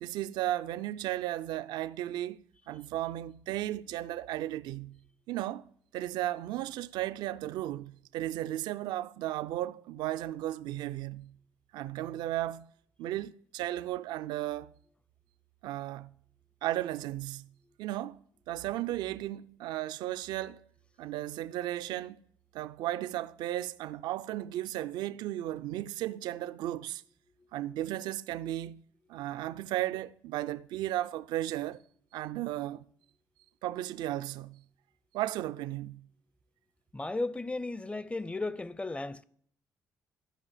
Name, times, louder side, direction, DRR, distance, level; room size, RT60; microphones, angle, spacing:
voice 1, 0.0-2.4 2.7-5.0 5.3-11.3 11.7-12.7 13.0-14.7 15.6-16.1 16.6-17.5 17.8-18.2 18.5-20.6 21.0-22.2 22.5-27.0 27.5-28.8 29.1-31.8 32.1-32.8 33.6-34.6 35.1-36.1, right 14 dB, 75° right, 0.4 m, -35 dB
voice 2, 36.9-39.2, left 2 dB, 15° left, 0.6 m, -35 dB
12.5 x 5.3 x 8.3 m
hypercardioid pair, 55°, 7 cm